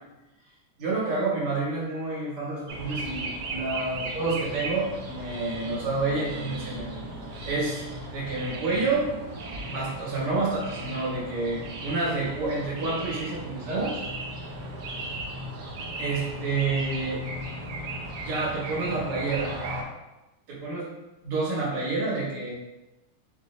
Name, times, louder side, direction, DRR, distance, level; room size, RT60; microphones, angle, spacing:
voice 1, 0.8-6.9 7.4-7.8 8.1-9.1 9.7-14.0 16.0-17.2 18.2-19.5 20.5-20.9 21.2-22.5, right 3 dB, 90° right, -6 dB, 2.3 m, -29 dB
sound 1, 2.7-19.8, right 1 dB, 70° right, 1.0 m, -36 dB
5.3 x 2.1 x 3.7 m, 1.0 s
omnidirectional pair, 2.4 m